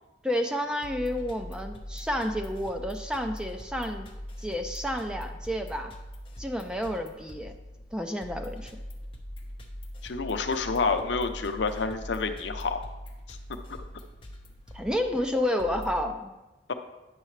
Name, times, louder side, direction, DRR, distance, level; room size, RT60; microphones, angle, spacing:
voice 1, 0.2-4.1 4.4-5.9 6.4-7.5 7.9-8.8 14.7-16.3, left 1 dB, 5° right, 5 dB, 0.4 m, -30 dB
sound 1, 0.8-16.0, equal, 30° left, 0.9 m, -42 dB
voice 2, 10.0-12.8 13.7-13.8 16.7-16.8, left 4 dB, 80° left, 8 dB, 0.6 m, -28 dB
9.8 x 6.6 x 3.2 m, 1.1 s
head